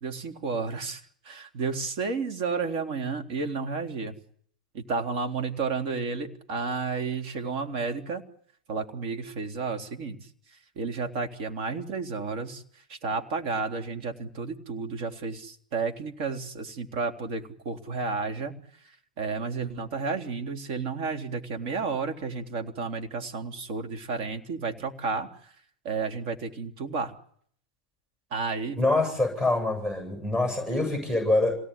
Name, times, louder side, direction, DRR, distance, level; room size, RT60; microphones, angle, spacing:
voice 1, 0.0-1.0 1.3-4.1 4.7-8.2 8.7-10.2 10.8-12.6 12.9-18.6 19.2-25.3 25.8-27.1 28.3-29.0, right 4 dB, 55° right, 5 dB, 3.5 m, -32 dB
voice 2, 28.8-31.6, left 2 dB, 10° right, 2 dB, 7.7 m, -25 dB
27.0 x 18.0 x 10.0 m, 0.62 s
hypercardioid pair, 100°, 4 cm